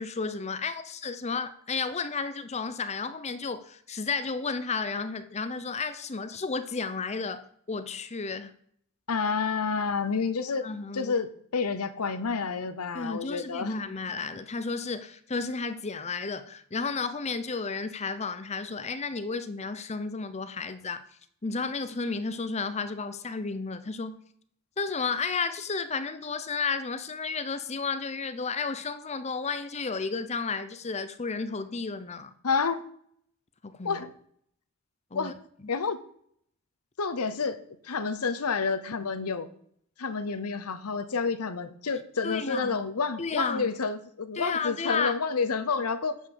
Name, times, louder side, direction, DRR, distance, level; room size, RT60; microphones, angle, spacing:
voice 1, 0.0-8.5 10.6-11.1 12.9-21.0 21.4-24.2 24.8-32.3 33.6-34.0 35.1-35.4 42.2-42.8 43.2-43.7 44.4-45.1, left 4 dB, 30° left, 0.7 m, -32 dB
voice 2, 9.1-10.7 10.9-13.7 32.4-32.8 33.8-34.1 35.1-35.3 35.7-36.0 37.0-37.6 37.8-39.5 40.0-46.2, left 5 dB, 85° left, 0.9 m, -29 dB
11.0 x 5.6 x 6.9 m
head